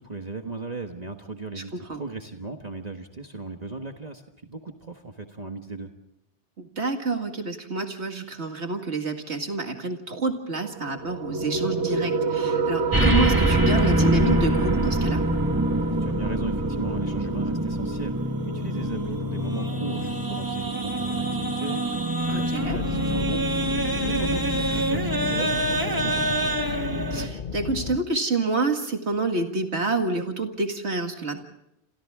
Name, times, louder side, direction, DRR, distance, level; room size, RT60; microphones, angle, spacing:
voice 1, 0.0-5.9 15.8-23.5 24.0-26.6, right 3 dB, 35° right, 4 dB, 1.5 m, -37 dB
voice 2, 1.6-2.0 6.6-15.2 22.3-22.8 27.1-31.4, right 3 dB, 70° right, 5 dB, 2.3 m, -28 dB
sound 1, 10.5-21.5, right 4 dB, 90° right, 1.7 m, -30 dB
sound 2, 12.9-27.3, right 1 dB, 20° right, 1.4 m, -25 dB
sound 3, 22.6-28.0, left 6 dB, 50° left, 1.0 m, -32 dB
28.0 x 27.5 x 3.7 m, 0.80 s
omnidirectional pair, 1.2 m